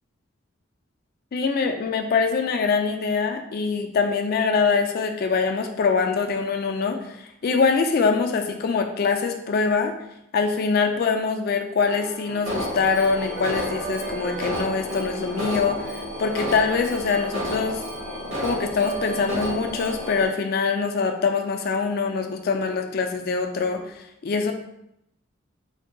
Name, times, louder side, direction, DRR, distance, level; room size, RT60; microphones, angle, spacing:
voice 1, 1.3-9.9 10.3-15.9 16.2-17.8 18.4-24.5, left 5 dB, 45° left, 5 dB, 0.3 m, -24 dB
sound 1, 11.8-19.9, right 3 dB, 40° right, 0.6 m, -37 dB
Alarm, 12.5-20.3, equal, 65° right, 1.1 m, -31 dB
2.6 x 2.2 x 3.7 m, 0.80 s
head